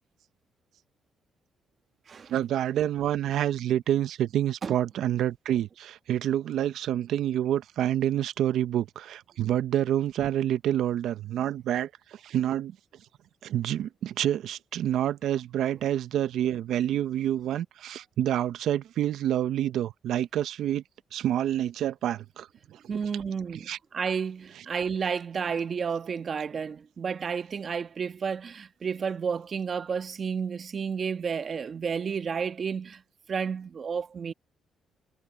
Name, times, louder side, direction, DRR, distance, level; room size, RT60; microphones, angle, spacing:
voice 1, 2.3-12.7 13.4-20.8 21.1-22.5 23.5-23.8, right 11 dB, 75° right, 0.6 m, -28 dB
voice 2, 22.9-33.0 33.3-34.3, right 6 dB, 45° right, 1.4 m, -31 dB
cardioid pair, 90°, 0 cm